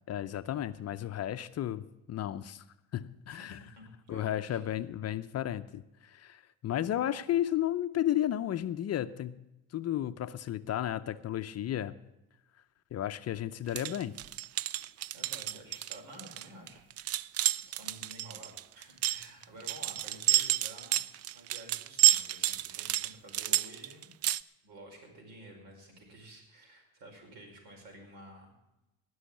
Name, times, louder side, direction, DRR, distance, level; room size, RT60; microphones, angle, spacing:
voice 1, 0.1-2.6 2.9-3.7 4.1-9.4 9.7-11.9 12.9-14.2, left 11 dB, 40° left, 11 dB, 0.6 m, -33 dB
voice 2, 3.3-4.6 15.1-17.3 17.7-21.0 21.3-24.1 24.6-28.5, right 1 dB, 70° right, 3 dB, 5.2 m, -51 dB
sound 1, 13.7-24.4, right 14 dB, 40° right, 0.4 m, -30 dB
18.5 x 6.4 x 8.4 m, 0.94 s
supercardioid pair, 90°, 40 cm